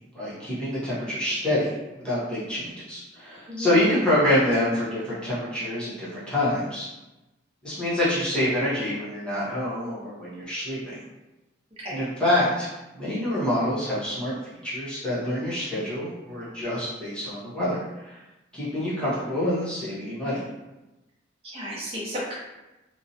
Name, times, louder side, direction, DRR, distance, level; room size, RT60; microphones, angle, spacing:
voice 1, 0.0-1.7 2.0-6.9 7.6-11.0 11.9-12.7 12.9-14.4 14.6-18.2 18.5-20.4, left 1 dB, 5° left, -10 dB, 0.8 m, -26 dB
voice 2, 21.4-22.4, equal, 30° right, -6 dB, 0.8 m, -33 dB
2.7 x 2.1 x 2.7 m, 1.0 s
head